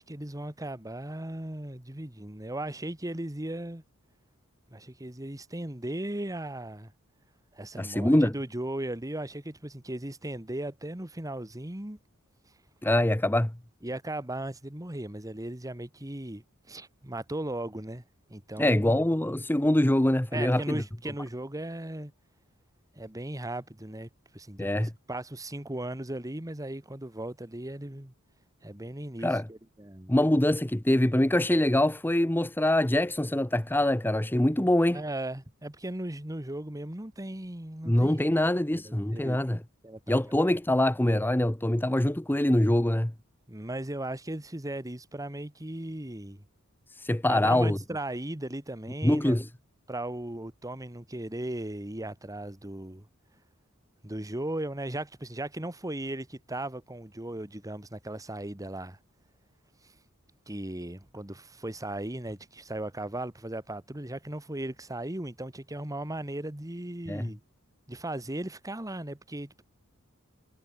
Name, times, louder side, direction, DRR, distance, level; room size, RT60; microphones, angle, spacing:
voice 1, 0.0-3.8 4.7-6.9 7.5-12.0 13.8-18.0 18.3-19.1 20.3-22.1 22.9-28.1 28.6-30.1 34.9-39.6 39.8-40.2 43.5-46.4 47.3-49.4 49.9-53.1 54.0-59.0 59.8-59.9 60.5-67.4 67.9-69.6, right 1 dB, 15° right, 1.6 m, -37 dB
voice 2, 7.8-8.3 12.8-13.5 18.6-20.8 24.6-24.9 29.2-29.5 30.1-35.0 37.9-39.6 40.1-43.1 47.0-47.8 49.0-49.5 67.1-67.3, left 1 dB, 10° left, 0.8 m, -24 dB
head